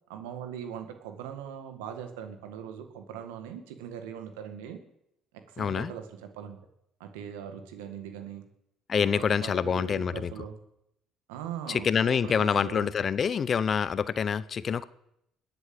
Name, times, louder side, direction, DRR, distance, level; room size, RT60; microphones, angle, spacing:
voice 1, 0.1-4.8 5.3-6.6 7.0-8.4 8.9-10.5 11.3-12.9, right 8 dB, 85° right, 7 dB, 1.9 m, -40 dB
voice 2, 5.6-5.9 8.9-10.3 11.7-14.8, left 7 dB, 45° left, 17 dB, 0.8 m, -26 dB
21.0 x 8.0 x 7.8 m, 0.82 s
hypercardioid pair, 65°, 0 cm